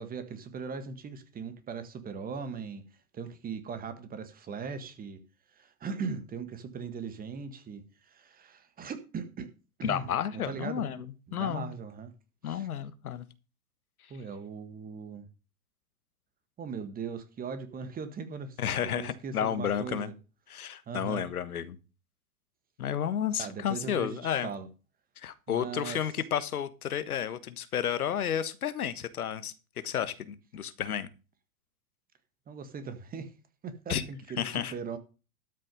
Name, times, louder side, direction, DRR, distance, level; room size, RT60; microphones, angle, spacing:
voice 1, 0.0-2.9 3.1-5.2 5.6-9.5 9.8-10.8 11.3-12.1 12.5-12.7 14.1-15.3 16.6-20.1 20.9-21.3 23.4-24.7 25.5-26.0 32.5-33.3 33.6-35.0, right 5 dB, 20° right, 1.7 m, -39 dB
voice 2, 9.8-11.1 11.3-11.7 12.4-13.2 18.6-20.1 20.5-21.8 22.8-24.5 25.2-29.5 29.8-31.1 33.9-34.0 34.4-34.7, left 9 dB, 75° left, 1.4 m, -32 dB
12.5 x 6.6 x 5.4 m
hypercardioid pair, 115°, 44 cm